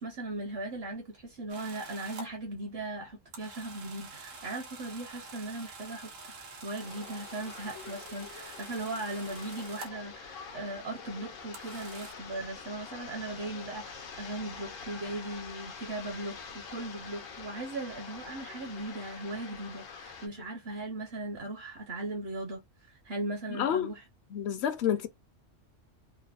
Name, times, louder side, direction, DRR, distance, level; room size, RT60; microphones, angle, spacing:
voice 1, 0.0-24.0, right 2 dB, 55° right, 0.9 m, -38 dB
sound 1, 1.5-2.3 3.3-10.1 11.5-12.1, right 3 dB, 85° right, 1.2 m, -47 dB
sound 2, 6.8-20.3, left 5 dB, 90° left, 1.1 m, -46 dB
voice 2, 23.5-23.9 24.3-25.1, left 9 dB, 65° left, 0.8 m, -29 dB
3.3 x 2.1 x 2.3 m
omnidirectional pair, 1.3 m